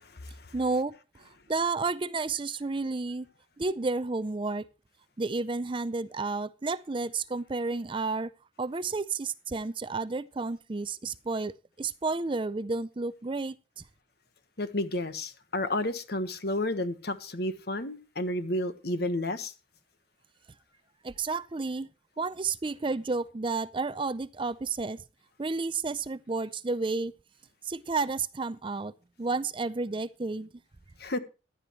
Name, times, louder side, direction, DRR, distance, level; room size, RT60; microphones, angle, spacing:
voice 1, 0.5-1.0 1.5-3.3 3.6-4.7 5.2-8.3 8.6-13.8 21.0-21.9 22.2-25.0 25.4-27.1 27.6-28.9 29.2-30.5, right 3 dB, 25° right, 0.5 m, -31 dB
voice 2, 14.6-19.5 31.0-31.2, left 1 dB, 55° left, 1.4 m, -31 dB
15.0 x 11.0 x 3.2 m
head